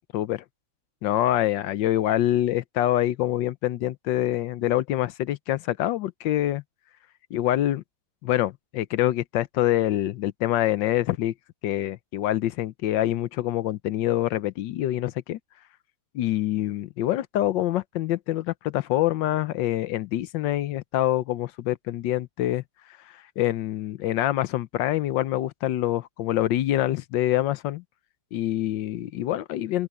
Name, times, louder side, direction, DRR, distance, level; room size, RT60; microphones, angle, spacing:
voice 1, 0.1-0.4 1.0-6.6 7.3-7.8 8.2-11.3 11.6-15.4 16.1-22.6 23.4-27.8 28.3-29.9, left 13 dB, 80° left, 1.4 m, -25 dB
open air
omnidirectional pair, 2.0 m